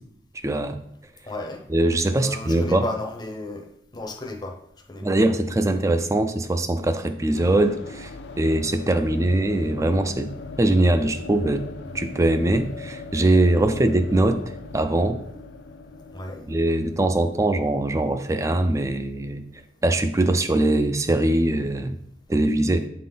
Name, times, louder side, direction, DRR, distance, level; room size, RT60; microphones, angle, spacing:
voice 1, 0.4-0.8 1.7-2.9 5.0-8.1 8.4-10.3 10.6-11.7 11.9-14.4 14.7-15.2 16.5-19.4 19.8-22.0 22.3-22.9, right 1 dB, 15° right, 9 dB, 0.4 m, -22 dB
voice 2, 1.2-1.6 2.2-3.7 3.9-4.6 4.9-5.1 16.1-16.5, left 2 dB, 20° left, 3 dB, 0.6 m, -33 dB
sound 1, 7.3-19.1, left 3 dB, 65° left, 0.5 m, -40 dB
8.2 x 3.9 x 3.9 m, 0.75 s
head